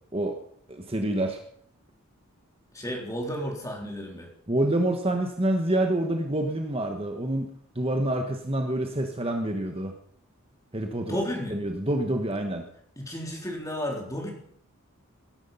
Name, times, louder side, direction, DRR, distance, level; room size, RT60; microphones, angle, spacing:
voice 1, 0.7-1.4 4.5-7.5 7.7-9.9 10.7-11.2 11.5-12.7, right 1 dB, 25° right, 4 dB, 1.3 m, -27 dB
voice 2, 2.7-4.3 11.0-11.6 13.0-14.3, equal, 15° left, 0 dB, 3.5 m, -32 dB
19.5 x 11.0 x 5.6 m, 0.65 s
head